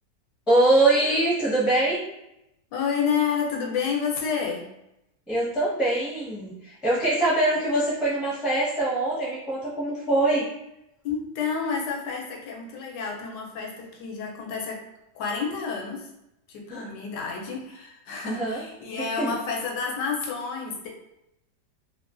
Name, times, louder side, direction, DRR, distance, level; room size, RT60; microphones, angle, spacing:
voice 1, 0.5-2.0 5.3-10.4 16.7-16.9 18.2-18.6 19.0-19.3, right 2 dB, ahead, -7 dB, 0.4 m, -23 dB
voice 2, 2.7-4.7 11.0-14.8 15.1-16.1 16.5-20.9, left 6 dB, 85° left, -1 dB, 1.3 m, -29 dB
3.2 x 2.2 x 2.4 m, 0.86 s
omnidirectional pair, 1.8 m